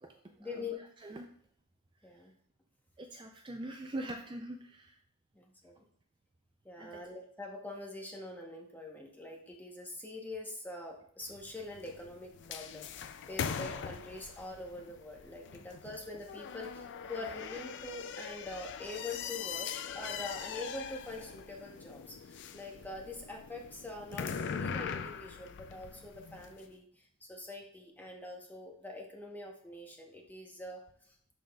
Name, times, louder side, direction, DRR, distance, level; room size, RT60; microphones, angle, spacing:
voice 1, 0.4-0.8 2.0-2.3 5.3-5.7 6.6-19.7 19.9-30.8, left 2 dB, 10° left, 0 dB, 1.0 m, -44 dB
voice 2, 3.0-5.0 6.8-6.9, right 1 dB, 20° right, 3 dB, 0.4 m, -42 dB
sound 1, 11.2-26.6, left 7 dB, 55° left, 0.4 m, -42 dB
11.5 x 3.9 x 2.3 m, 0.64 s
head